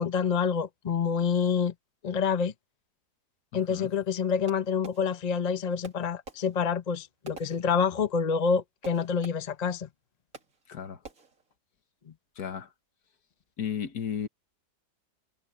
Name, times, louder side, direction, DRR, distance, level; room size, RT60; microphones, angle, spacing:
voice 1, 0.0-1.7 2.0-2.5 3.5-9.9, left 6 dB, 30° left, 0.9 m, -27 dB
voice 2, 3.5-3.9 10.7-11.0 12.4-12.7 13.6-14.3, left 8 dB, 70° left, 1.9 m, -34 dB
Fireworks, 4.5-5.5 5.8-8.2 8.8-9.7 10.3-10.8 11.0-11.5, right 4 dB, 55° right, 2.8 m, -50 dB
omnidirectional pair, 1.7 m